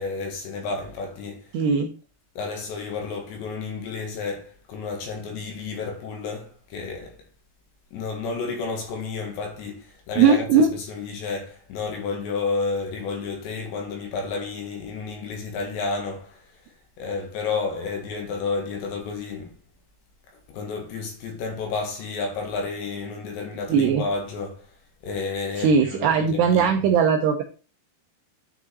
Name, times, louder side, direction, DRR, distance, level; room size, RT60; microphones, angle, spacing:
voice 1, 0.0-1.5 2.4-7.2 7.9-16.5 17.0-19.5 20.5-24.7 25.0-26.8, left 4 dB, 65° left, 3.8 m, -31 dB
voice 2, 1.5-1.9 10.2-10.7 23.7-24.0 25.6-27.4, right 6 dB, 80° right, 2.4 m, -19 dB
9.9 x 5.3 x 4.0 m
omnidirectional pair, 5.8 m